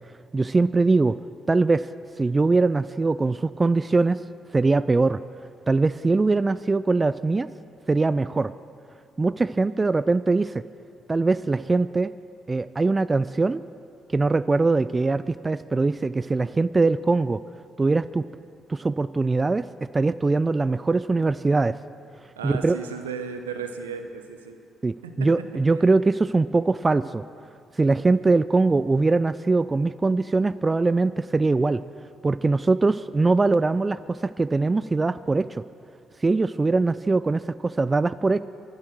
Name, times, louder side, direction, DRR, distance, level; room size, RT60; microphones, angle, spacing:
voice 1, 0.3-1.2 1.5-1.9 2.2-4.2 4.5-5.2 5.7-7.5 7.9-8.5 9.2-10.6 11.1-12.1 12.5-13.6 14.1-17.4 17.8-18.3 18.7-21.8 22.4-22.8 24.8-27.2 27.8-31.8 32.2-35.6 36.2-38.4, right 3 dB, 30° right, 17 dB, 0.4 m, -22 dB
voice 2, 22.4-24.6 25.0-25.5, right 6 dB, 90° right, 7 dB, 0.9 m, -35 dB
23.5 x 7.9 x 6.3 m, 2.3 s
hypercardioid pair, 45°, 0 cm